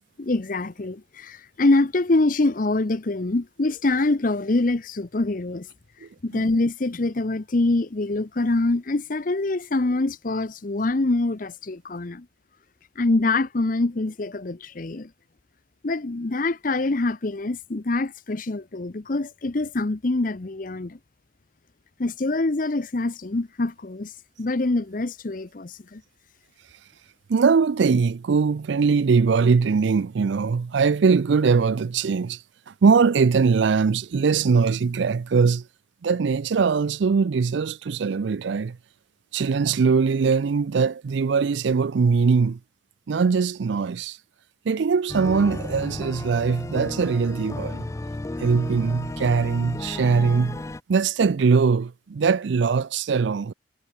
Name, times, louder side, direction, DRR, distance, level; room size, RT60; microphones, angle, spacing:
voice 1, 0.2-5.7 6.2-12.2 13.0-15.1 15.8-21.0 22.0-24.1 24.4-26.0, left 2 dB, 45° left, 0.7 m, -25 dB
voice 2, 27.3-32.4 32.8-35.6 36.0-38.7 39.3-42.6 43.1-44.2 44.7-47.9 48.4-50.6 50.9-53.5, right 5 dB, 70° right, 0.4 m, -21 dB
sound 1, 45.1-50.8, left 2 dB, 15° left, 0.3 m, -33 dB
head